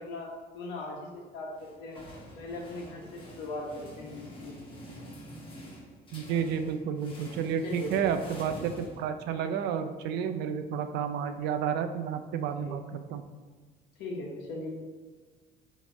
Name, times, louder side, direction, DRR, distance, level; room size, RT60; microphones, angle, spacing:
voice 1, 0.0-2.0 2.4-4.5 7.6-8.1 12.4-12.8 14.0-14.7, left 2 dB, 80° left, -1 dB, 1.1 m, -39 dB
sound 1, 1.6-9.5, equal, 30° left, 1.0 m, -47 dB
voice 2, 6.1-13.2, right 7 dB, 80° right, 9 dB, 0.4 m, -31 dB
4.1 x 3.0 x 3.9 m, 1.4 s
cardioid pair, 110°, 17 cm